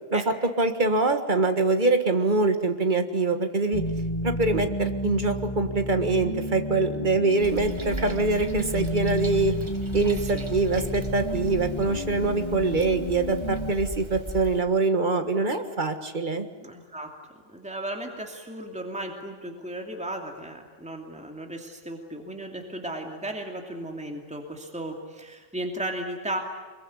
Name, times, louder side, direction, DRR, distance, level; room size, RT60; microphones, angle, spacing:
voice 1, 0.1-3.9 4.2-9.6 9.9-16.5, right 3 dB, 40° right, 7 dB, 1.8 m, -24 dB
sound 1, 3.7-13.7, left 1 dB, 25° left, 1.8 m, -32 dB
Toilet flush, 7.4-14.6, right 2 dB, 20° right, 1.8 m, -38 dB
voice 2, 10.2-10.5 16.6-26.4, right 1 dB, 5° right, 2 dB, 2.7 m, -35 dB
25.0 x 22.5 x 9.7 m, 1.3 s
omnidirectional pair, 1.3 m